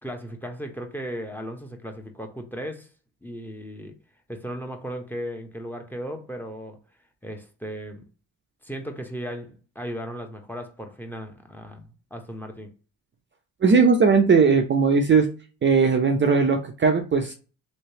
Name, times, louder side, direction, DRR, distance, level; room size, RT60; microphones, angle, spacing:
voice 1, 0.0-2.9 3.2-4.0 4.3-6.8 7.2-8.0 8.6-11.8 12.1-12.7, equal, 5° left, 0.8 m, -36 dB
voice 2, 13.6-15.3 15.6-17.3, right 5 dB, 30° right, 0.6 m, -18 dB
3.2 x 2.9 x 2.8 m
supercardioid pair, 75°, 39 cm